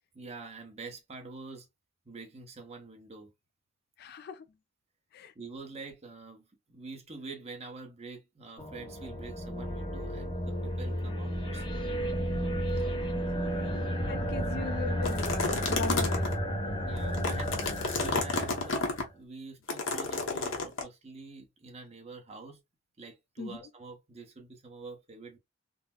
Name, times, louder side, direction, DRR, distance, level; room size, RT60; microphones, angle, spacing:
voice 1, 0.1-1.7 2.0-3.3 5.3-12.0 16.8-22.6 23.0-25.4, right 3 dB, 35° right, 0.8 m, -46 dB
voice 2, 4.0-4.4 5.1-5.3 12.8-12.9 14.1-16.3 23.4-23.7, left 4 dB, 55° left, 0.4 m, -39 dB
sound 1, 8.6-19.1, equal, 25° left, 0.8 m, -33 dB
sound 2, 15.0-16.4 17.0-19.0 19.7-20.8, left 3 dB, 80° left, 0.9 m, -31 dB
3.9 x 2.1 x 2.3 m
head